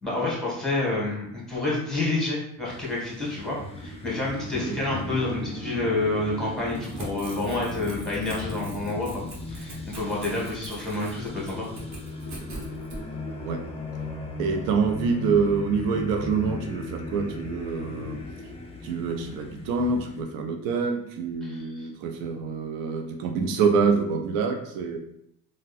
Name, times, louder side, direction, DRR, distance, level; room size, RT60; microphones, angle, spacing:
voice 1, 0.0-9.2 9.5-11.7 21.4-21.7, left 2 dB, ahead, -5 dB, 1.5 m, -28 dB
sound 1, 2.7-20.2, left 2 dB, 20° left, 0.5 m, -37 dB
Crackle / Tearing, 6.6-13.0, right 1 dB, 55° right, 1.0 m, -42 dB
voice 2, 14.4-18.2 18.8-25.0, right 5 dB, 85° right, 4 dB, 0.5 m, -26 dB
3.5 x 2.1 x 2.4 m, 0.72 s
supercardioid pair, 85°, 34 cm